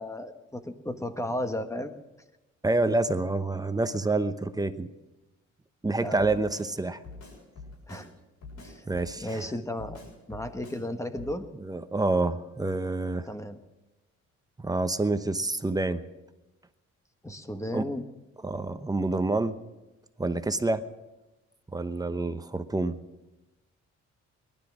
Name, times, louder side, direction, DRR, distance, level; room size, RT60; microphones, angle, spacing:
voice 1, 0.0-1.9 6.0-6.4 7.9-8.1 8.6-8.8 9.2-10.0 10.3-11.4 13.3-13.6 17.2-18.0, left 1 dB, 10° left, 8 dB, 1.3 m, -34 dB
voice 2, 2.6-4.9 5.8-7.0 8.9-9.5 11.6-13.3 14.6-16.0 17.7-17.9 18.4-19.6 20.2-20.8 21.7-23.0, right 2 dB, 10° right, 10 dB, 0.9 m, -28 dB
Drum kit, 6.2-6.7 7.0-8.1 8.4-9.5 9.8-10.8 11.1-11.3, left 3 dB, 70° left, 7.1 m, -45 dB
19.0 x 12.0 x 6.2 m, 1.0 s
cardioid pair, 90°, 30 cm